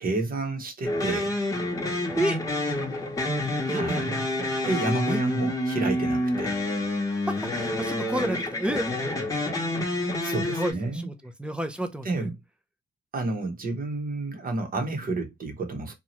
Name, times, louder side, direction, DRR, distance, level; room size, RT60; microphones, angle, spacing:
voice 1, 0.0-1.3 3.7-4.2 4.7-6.6 10.2-11.1 12.0-12.3 13.1-15.9, right 3 dB, 45° right, 1.0 m, -30 dB
sound 1, 0.8-10.7, left 1 dB, 15° left, 1.0 m, -28 dB
voice 2, 7.1-8.9 10.5-11.1 11.4-12.3, right 1 dB, 5° right, 0.6 m, -30 dB
2.8 x 2.3 x 3.0 m
cardioid pair, 90°, 20 cm